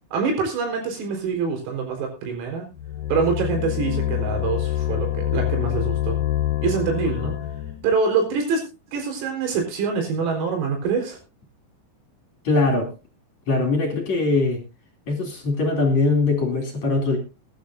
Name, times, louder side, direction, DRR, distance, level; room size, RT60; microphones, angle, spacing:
voice 1, 0.1-2.7 3.1-6.2 6.6-7.4 7.8-8.6 8.9-11.2, right 5 dB, 90° right, 2 dB, 7.0 m, -25 dB
sound 1, 2.7-7.9, left 13 dB, 85° left, 1.8 m, -26 dB
voice 2, 12.4-12.9 13.5-14.6 15.1-17.2, left 3 dB, 40° left, 2 dB, 3.3 m, -21 dB
22.0 x 11.5 x 2.6 m, 0.27 s
omnidirectional pair, 6.0 m